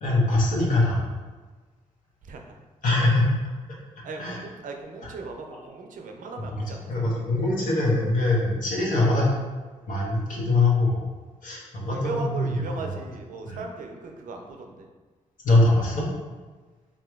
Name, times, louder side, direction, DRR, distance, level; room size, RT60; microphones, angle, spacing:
voice 1, 0.0-1.0 2.8-3.3 4.2-4.4 6.4-6.6 6.9-9.3 9.8-11.0 11.4-12.8 13.4-13.6 15.4-16.1, left 2 dB, 65° left, -4 dB, 1.0 m, -22 dB
voice 2, 2.2-2.6 4.0-7.2 11.7-14.9, right 3 dB, 65° right, 3 dB, 0.5 m, -38 dB
3.7 x 2.8 x 2.3 m, 1.3 s
supercardioid pair, 50°, 15 cm